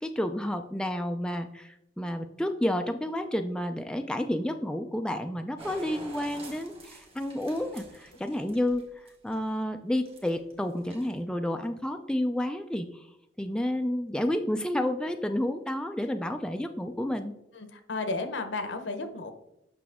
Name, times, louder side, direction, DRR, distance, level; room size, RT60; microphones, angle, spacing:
voice 1, 0.0-13.1 13.4-17.3, left 1 dB, 5° left, 6 dB, 0.4 m, -30 dB
sound 1, 5.6-9.5 10.0-10.5 10.8-11.2, right 2 dB, 30° right, 1.5 m, -47 dB
voice 2, 17.5-19.3, left 3 dB, 65° left, 8 dB, 0.9 m, -33 dB
8.4 x 5.8 x 3.5 m, 0.82 s
head